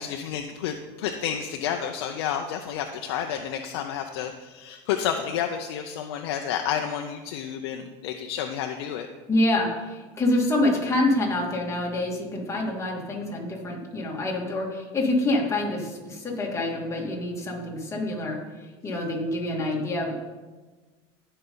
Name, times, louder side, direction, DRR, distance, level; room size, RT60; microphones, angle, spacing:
voice 1, 0.0-9.1, left 8 dB, 85° left, 4 dB, 0.7 m, -30 dB
voice 2, 9.3-18.4 18.8-20.1, left 1 dB, 20° left, -2 dB, 2.5 m, -26 dB
16.5 x 5.5 x 3.9 m, 1.3 s
supercardioid pair, 115°, 13 cm